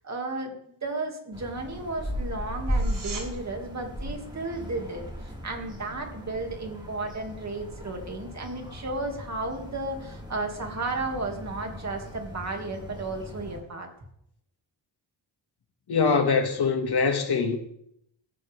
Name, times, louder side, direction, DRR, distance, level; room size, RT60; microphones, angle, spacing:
voice 1, 0.0-13.9, right 2 dB, 40° right, 2.6 m, -34 dB
sound 1, 1.3-13.6, equal, 10° right, 6.9 m, -37 dB
sound 2, 2.7-3.3 14.6-14.7, right 4 dB, 65° right, 5.1 m, -39 dB
voice 2, 15.9-17.6, left 5 dB, 60° left, 2.3 m, -23 dB
21.0 x 14.5 x 3.7 m
wide cardioid pair, 165°, 43 cm